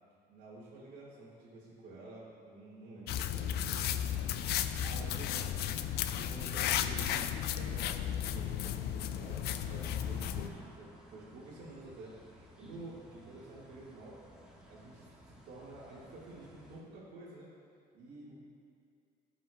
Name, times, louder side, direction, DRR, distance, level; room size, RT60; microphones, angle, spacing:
voice 1, 0.3-3.9 4.2-4.3 4.8-5.7 6.2-9.4 9.7-14.2 14.7-17.5 17.9-18.4, right 2 dB, 85° right, -8 dB, 1.7 m, -50 dB
sound 1, 3.1-10.5, left 10 dB, 75° left, 0.4 m, -34 dB
sound 2, 3.7-16.8, equal, 5° right, 1.3 m, -57 dB
14.5 x 6.0 x 2.2 m, 2.4 s
cardioid pair, 110°, 17 cm